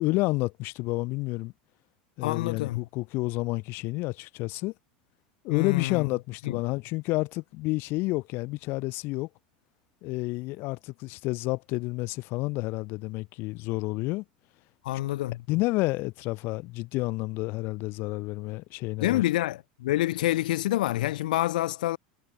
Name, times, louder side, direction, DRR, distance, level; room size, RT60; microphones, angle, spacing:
voice 1, 0.0-1.5 2.2-4.7 5.4-9.3 10.0-14.2 15.5-19.2, left 22 dB, 55° left, 0.9 m, -30 dB
voice 2, 2.2-2.8 5.5-6.0 6.5-6.6 14.8-15.4 19.0-22.0, left 15 dB, 85° left, 0.3 m, -27 dB
supercardioid pair, 115°, 4 cm